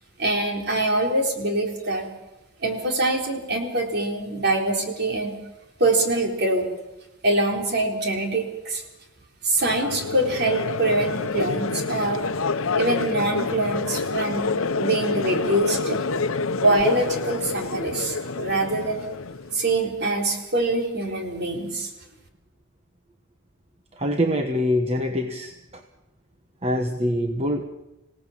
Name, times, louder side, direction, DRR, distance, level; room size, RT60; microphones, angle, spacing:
voice 1, 0.2-2.1 2.6-5.4 5.8-6.7 7.2-8.8 9.4-12.2 12.8-16.1 16.5-19.0 19.5-21.9, right 2 dB, 50° right, 2 dB, 3.9 m, -24 dB
Crowd, 9.6-19.8, left 4 dB, 85° left, 0.8 m, -28 dB
voice 2, 23.9-25.8 26.6-27.6, equal, 30° right, 5 dB, 1.2 m, -24 dB
26.5 x 17.5 x 7.3 m, 0.98 s
head